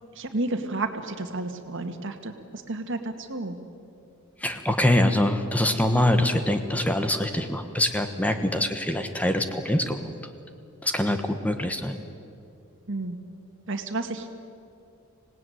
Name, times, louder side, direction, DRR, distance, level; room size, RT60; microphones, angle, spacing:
voice 1, 0.2-3.6 12.9-13.2 13.7-14.3, right 2 dB, 65° right, 6 dB, 2.0 m, -31 dB
voice 2, 4.4-10.1 10.8-12.0, left 1 dB, 5° left, 7 dB, 1.2 m, -24 dB
26.0 x 18.5 x 9.3 m, 2.5 s
head